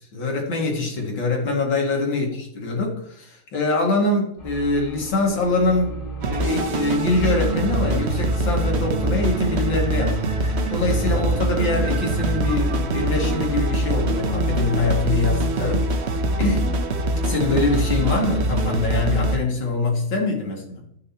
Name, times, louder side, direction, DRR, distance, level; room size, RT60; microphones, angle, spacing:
voice 1, 0.1-6.0 6.3-16.8 17.2-20.8, left 2 dB, 70° left, 0 dB, 2.9 m, -24 dB
sound 1, 4.4-14.0, right 4 dB, 85° left, 4.5 m, -36 dB
sound 2, 6.2-19.4, right 1 dB, 55° right, 0.7 m, -23 dB
14.0 x 6.5 x 2.9 m, 0.73 s
omnidirectional pair, 2.2 m